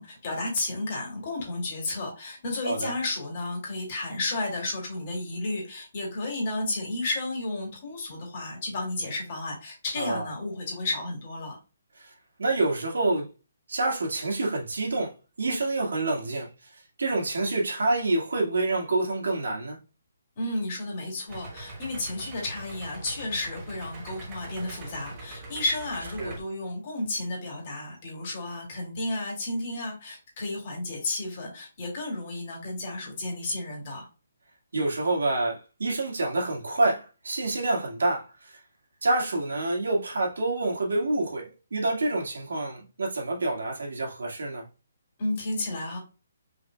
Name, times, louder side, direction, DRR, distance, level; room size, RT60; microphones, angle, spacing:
voice 1, 0.0-11.6 20.4-34.1 45.2-46.0, left 2 dB, 30° left, 2.2 m, -32 dB
voice 2, 12.4-13.3 13.7-15.1 15.4-16.5 17.0-19.8 26.2-26.3 34.7-38.6 39.0-44.6, right 2 dB, 85° right, 1.9 m, -27 dB
Idling, 21.3-26.4, right 2 dB, 20° right, 1.0 m, -42 dB
5.0 x 4.2 x 2.3 m
hypercardioid pair, 175°, 0 cm